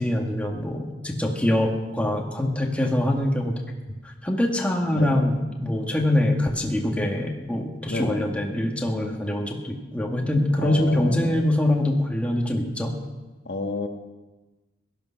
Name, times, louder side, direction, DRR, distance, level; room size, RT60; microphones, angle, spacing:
voice 1, 0.0-3.6 4.0-13.0, left 1 dB, 5° left, 1 dB, 1.8 m, -24 dB
voice 2, 4.9-5.3 7.9-8.3 10.6-11.4 13.4-13.9, left 2 dB, 60° left, 4 dB, 1.5 m, -30 dB
17.0 x 12.5 x 5.7 m, 1.2 s
head